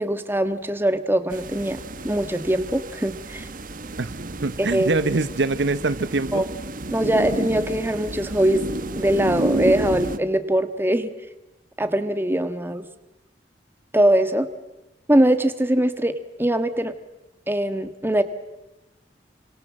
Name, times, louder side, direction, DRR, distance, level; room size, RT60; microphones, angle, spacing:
voice 1, 0.0-3.5 4.6-5.1 6.3-6.5 6.9-8.6 9.0-11.1 11.8-12.8 13.9-14.5 15.1-16.1 16.4-16.9 17.5-18.2, right 1 dB, 15° right, 9 dB, 1.5 m, -22 dB
sound 1, 1.3-10.2, right 1 dB, 50° right, 1.2 m, -31 dB
voice 2, 4.4-6.5, right 3 dB, 75° right, 14 dB, 0.8 m, -24 dB
28.0 x 25.5 x 7.5 m, 1.0 s
head